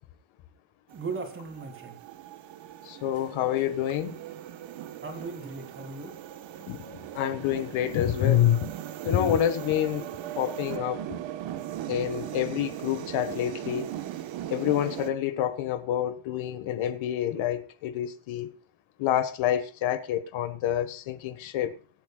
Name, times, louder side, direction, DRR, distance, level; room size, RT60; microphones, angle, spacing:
voice 1, 0.9-2.0 5.0-6.1, right 4 dB, 25° right, 2.9 m, -37 dB
sound 1, 0.9-15.1, right 12 dB, 70° right, 1.3 m, -39 dB
voice 2, 2.8-4.1 6.7-8.6 9.0-10.1 10.4-11.2 11.9-13.9 14.5-18.5 19.0-21.7, left 11 dB, 80° left, 1.6 m, -27 dB
23.5 x 9.0 x 2.4 m
cardioid pair, 170°, 47 cm